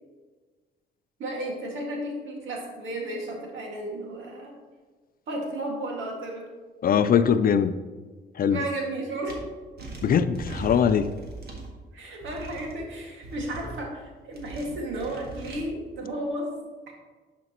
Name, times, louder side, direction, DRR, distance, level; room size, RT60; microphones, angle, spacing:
voice 1, 1.2-4.5 5.3-6.4 8.5-9.3 11.9-16.5 16.9-17.0, right 1 dB, 75° right, 0 dB, 1.9 m, -33 dB
voice 2, 6.8-7.7 8.4-8.6 10.0-11.1, left 7 dB, 50° left, 12 dB, 0.4 m, -21 dB
sound 1, 9.3-9.4 9.8-11.7 12.2-12.7 13.2-13.8 14.3-15.6, right 2 dB, 55° right, 1.6 m, -39 dB
11.0 x 5.1 x 3.0 m, 1.4 s
cardioid pair, 90°, 20 cm